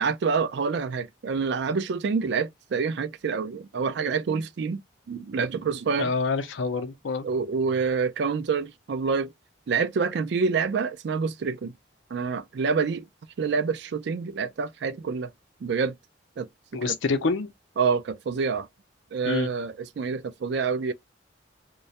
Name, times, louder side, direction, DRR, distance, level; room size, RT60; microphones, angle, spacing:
voice 1, 0.0-4.8 5.1-6.1 7.2-9.3 9.7-11.7 12.1-13.0 13.4-15.3 15.6-15.9 16.4-17.0 17.8-18.7 19.1-20.9, right 5 dB, 60° right, 0.3 m, -27 dB
voice 2, 6.0-7.3 16.7-17.5 19.3-19.5, left 4 dB, 75° left, 0.5 m, -27 dB
2.2 x 2.0 x 2.7 m
head